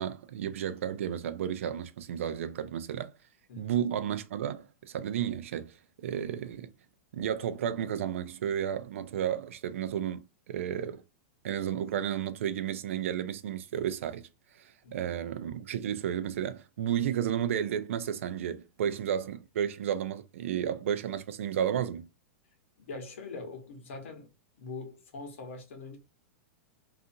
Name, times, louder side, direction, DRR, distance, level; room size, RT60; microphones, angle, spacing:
voice 1, 0.0-3.1 3.6-5.8 6.0-6.7 7.1-11.0 11.4-14.3 14.5-22.1, right 9 dB, 65° right, 0.4 m, -32 dB
voice 2, 3.5-3.8 14.8-15.0 22.8-24.3 24.6-26.0, left 3 dB, 60° left, 1.1 m, -42 dB
2.6 x 2.4 x 2.6 m
supercardioid pair, 175°, 8 cm